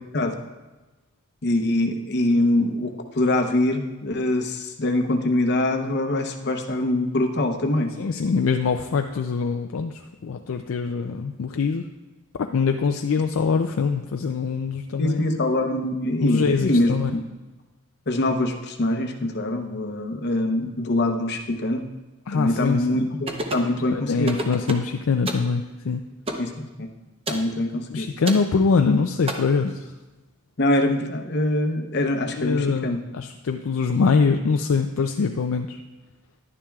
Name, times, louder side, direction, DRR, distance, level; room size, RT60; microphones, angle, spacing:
voice 1, 1.4-7.9 15.0-17.2 18.1-21.8 22.3-24.3 26.4-26.9 27.3-28.1 30.6-33.0, left 1 dB, 50° left, 4 dB, 0.8 m, -24 dB
voice 2, 8.0-11.8 12.3-15.3 16.2-17.2 22.3-23.0 23.9-26.0 27.9-29.8 32.4-35.8, left 5 dB, 65° left, 5 dB, 0.4 m, -23 dB
sound 1, 23.3-23.7 24.3-24.9 25.3-25.5 26.3-26.5 27.3-27.5 28.3-28.5 29.3-29.4, right 2 dB, 25° right, 0.8 m, -29 dB
11.0 x 10.0 x 2.3 m, 1.1 s
head